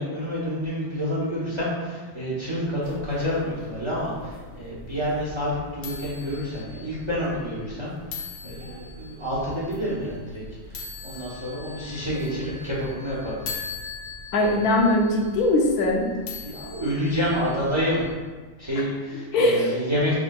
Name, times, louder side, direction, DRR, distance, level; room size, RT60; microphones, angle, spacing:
voice 1, 0.0-13.4 16.4-18.1 18.6-20.1, equal, 25° right, -7 dB, 0.6 m, -28 dB
sound 1, 2.8-18.1, left 4 dB, 60° left, 1.0 m, -40 dB
voice 2, 14.3-16.1 19.3-19.7, left 1 dB, 85° left, 0 dB, 1.1 m, -20 dB
4.9 x 3.5 x 2.2 m, 1.4 s
omnidirectional pair, 1.6 m